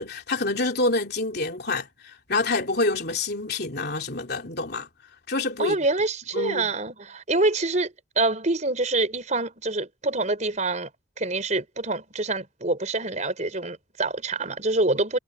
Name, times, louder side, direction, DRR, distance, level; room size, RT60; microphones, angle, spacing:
voice 1, 0.0-4.9 5.3-5.8 6.3-6.7, left 2 dB, 55° left, 3.3 m, -27 dB
voice 2, 5.6-10.9 11.2-15.2, right 2 dB, 35° right, 4.8 m, -26 dB
head